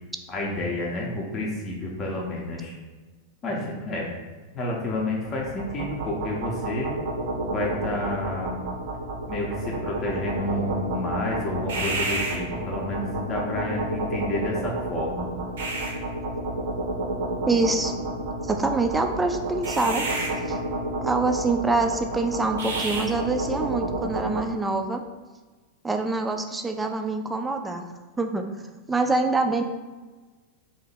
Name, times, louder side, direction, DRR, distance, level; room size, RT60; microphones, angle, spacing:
voice 1, 0.3-2.7 3.4-4.1 4.5-6.9 7.4-8.5 9.3-15.3, left 2 dB, 30° left, -3 dB, 0.7 m, -30 dB
sound 1, 5.2-24.5, right 2 dB, 60° right, 0.6 m, -30 dB
voice 2, 17.5-17.9 18.4-20.0 20.5-20.6 21.0-25.0 25.8-27.8 28.2-28.4 28.9-29.6, right 3 dB, 10° right, 5 dB, 0.3 m, -25 dB
3.0 x 2.8 x 4.1 m, 1.3 s
figure-of-eight pair, 90°, 0 cm